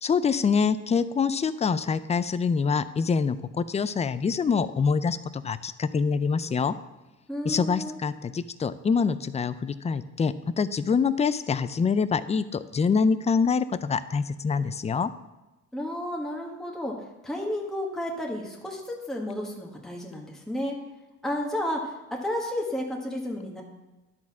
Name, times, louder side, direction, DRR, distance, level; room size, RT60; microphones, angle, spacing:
voice 1, 0.0-6.7 7.4-15.1, left 5 dB, 20° left, 14 dB, 0.4 m, -25 dB
voice 2, 7.3-8.0 15.7-16.9 17.2-18.8 19.1-20.8 21.2-23.6, left 1 dB, ahead, -1 dB, 1.5 m, -32 dB
10.5 x 4.2 x 5.9 m, 1.1 s
cardioid pair, 90°, 30 cm